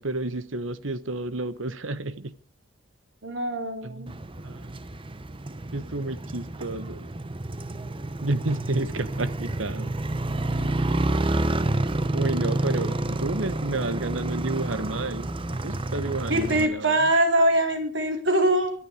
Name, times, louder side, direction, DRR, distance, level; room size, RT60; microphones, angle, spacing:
voice 1, 0.0-2.3 3.8-4.1 4.4-4.8 5.7-7.1 8.2-9.9 10.5-10.8 12.1-15.3 15.6-17.1, right 2 dB, 90° right, 1.3 m, -31 dB
voice 2, 3.2-4.1 16.3-18.7, right 1 dB, 65° right, 4.6 m, -23 dB
Motorcycle, 4.1-16.6, right 2 dB, 25° right, 0.8 m, -29 dB
23.5 x 12.0 x 5.0 m
head